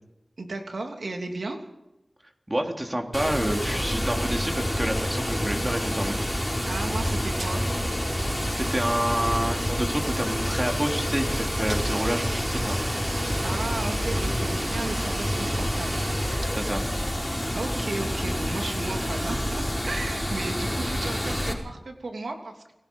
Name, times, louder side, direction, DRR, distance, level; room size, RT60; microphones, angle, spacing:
voice 1, 0.4-1.6 6.7-7.7 13.4-16.0 17.5-22.7, right 2 dB, 90° right, 3 dB, 3.1 m, -34 dB
voice 2, 2.5-6.2 8.2-12.8 16.5-16.8, right 1 dB, 20° right, 2 dB, 3.7 m, -28 dB
Water, 3.1-21.5, equal, 5° left, 5.4 m, -28 dB
sound 1, 5.6-16.4, right 2 dB, 65° right, 2.0 m, -40 dB
29.0 x 19.5 x 5.6 m, 0.90 s
wide cardioid pair, 65°, 0 cm